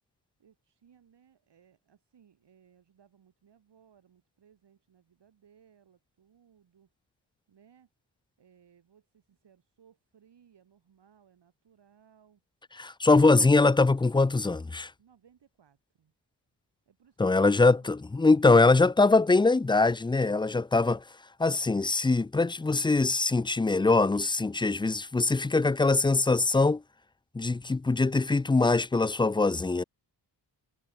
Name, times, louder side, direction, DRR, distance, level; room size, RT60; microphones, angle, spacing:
voice 1, 0.4-6.9 7.5-7.9 8.4-12.4 15.0-16.1 16.9-17.9 18.3-18.6, right 8 dB, 70° right, 7.7 m, -62 dB
voice 2, 12.8-14.9 17.2-21.0 21.4-26.8 27.3-29.8, left 3 dB, 10° left, 0.3 m, -23 dB
wide cardioid pair, 150°, 43 cm